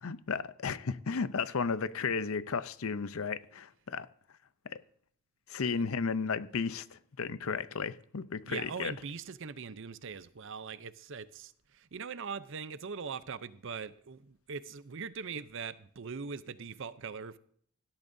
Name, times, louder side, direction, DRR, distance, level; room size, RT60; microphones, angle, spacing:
voice 1, 0.0-4.1 4.7-4.8 5.5-8.9, left 5 dB, 70° left, 0.6 m, -34 dB
voice 2, 8.4-17.4, right 5 dB, 60° right, 0.6 m, -41 dB
17.5 x 12.0 x 2.7 m
head